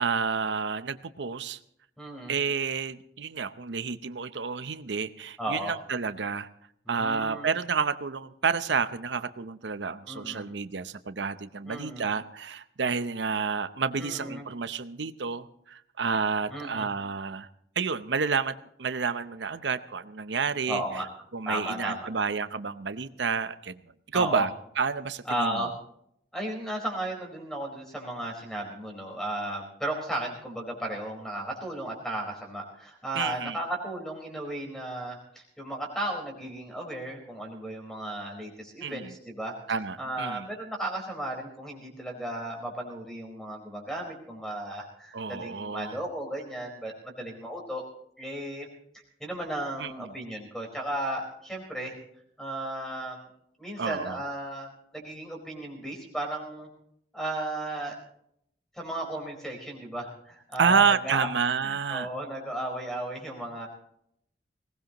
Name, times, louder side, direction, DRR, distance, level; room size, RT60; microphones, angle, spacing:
voice 1, 0.0-1.6 2.3-6.5 6.9-17.5 17.8-20.8 21.3-23.8 24.1-25.7 33.1-33.6 38.8-39.1 39.7-40.5 45.1-46.0 49.8-50.1 53.8-54.2 60.6-62.1, right 5 dB, 85° right, 12 dB, 0.7 m, -29 dB
voice 2, 2.0-2.3 5.4-5.7 6.9-7.5 10.1-10.4 11.7-12.0 14.0-14.4 16.5-16.9 20.7-21.1 21.4-22.1 24.1-24.5 25.3-25.7 26.3-39.5 40.0-47.8 48.2-48.7 49.2-51.9 52.4-53.3 53.6-56.7 57.1-57.9 58.7-61.3 61.6-63.7, right 1 dB, 5° left, 1 dB, 4.6 m, -35 dB
21.0 x 18.5 x 3.0 m, 0.71 s
head